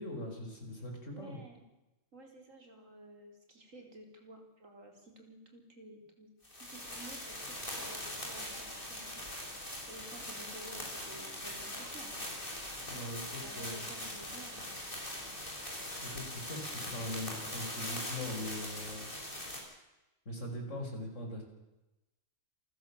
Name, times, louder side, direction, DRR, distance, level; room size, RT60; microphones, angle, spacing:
voice 1, 0.0-1.4 12.9-13.9 16.0-19.1 20.3-21.4, left 1 dB, 65° left, 2 dB, 5.4 m, -41 dB
voice 2, 1.1-1.6 2.1-6.3 6.6-9.2 9.9-12.1 13.1-14.7, right 1 dB, 70° right, 3 dB, 4.7 m, -53 dB
sound 1, 6.4-19.6, left 1 dB, 40° left, 6.0 m, -41 dB
27.5 x 15.0 x 7.2 m, 0.99 s
omnidirectional pair, 1.4 m